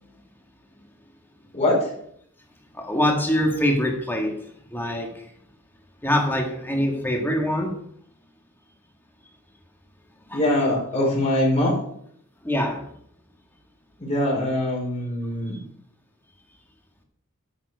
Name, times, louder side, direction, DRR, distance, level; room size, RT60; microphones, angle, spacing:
voice 1, 1.5-1.9 10.3-11.8 14.0-15.6, left 1 dB, 30° left, -2 dB, 4.3 m, -23 dB
voice 2, 2.7-5.2 6.0-7.8 10.3-10.4 12.4-12.9, left 1 dB, 10° left, 2 dB, 1.8 m, -24 dB
11.0 x 7.5 x 4.8 m, 0.68 s
head